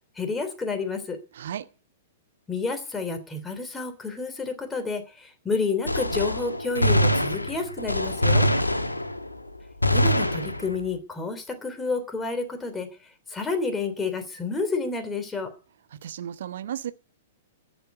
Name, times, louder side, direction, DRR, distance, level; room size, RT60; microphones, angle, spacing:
voice 1, 0.1-1.2 2.5-8.5 9.9-13.0 13.3-15.5, left 4 dB, 10° left, 3.2 m, -30 dB
voice 2, 1.3-1.7 15.9-16.9, right 10 dB, 55° right, 1.1 m, -34 dB
Gunshot gunfire, 5.9-9.4 9.8-10.9, equal, 85° left, 1.3 m, -24 dB
14.5 x 7.9 x 9.4 m
figure-of-eight pair, 105°, 0 cm